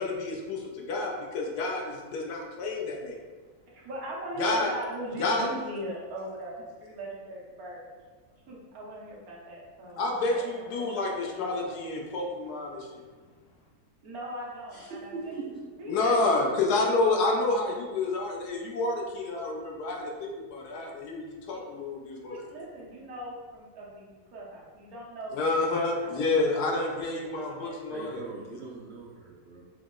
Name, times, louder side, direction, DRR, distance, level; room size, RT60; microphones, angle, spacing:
voice 1, 0.0-3.2 4.4-4.7 5.2-5.4 10.0-13.0 15.9-22.4 25.3-28.2, left 3 dB, 85° left, 0 dB, 1.2 m, -29 dB
voice 2, 3.7-7.9 8.5-11.8 14.0-15.4 15.8-17.3 21.5-21.6 22.2-24.1 24.3-25.4 25.7-26.4 26.8-28.1, right 1 dB, 70° right, -4 dB, 1.3 m, -40 dB
voice 3, 14.7-15.6 27.9-29.6, right 4 dB, 85° right, -3 dB, 0.5 m, -41 dB
4.8 x 2.0 x 3.7 m, 1.4 s
omnidirectional pair, 1.7 m